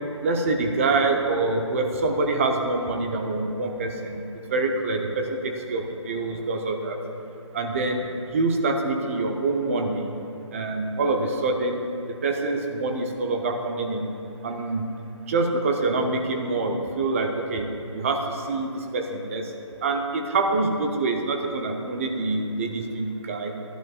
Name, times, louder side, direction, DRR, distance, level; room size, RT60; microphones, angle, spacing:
voice 1, 0.2-4.2 4.5-7.0 7.5-10.1 10.5-11.8 12.2-14.1 14.4-14.9 15.3-17.7 17.9-19.5 19.8-23.5, right 3 dB, 25° right, 3 dB, 0.7 m, -25 dB
14.5 x 11.0 x 2.4 m, 2.7 s
figure-of-eight pair, 155°, 16 cm